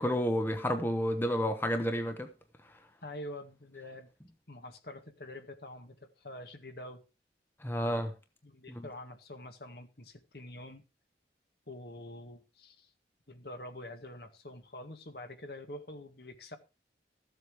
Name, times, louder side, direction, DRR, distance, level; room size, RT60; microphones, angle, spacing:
voice 1, 0.0-2.3 7.6-8.1 8.7-8.9, equal, 10° left, 0.9 m, -30 dB
voice 2, 3.0-4.1 4.5-7.0 8.4-10.8 11.7-12.9 13.3-16.6, left 1 dB, 60° left, 1.8 m, -46 dB
14.5 x 7.8 x 4.8 m
head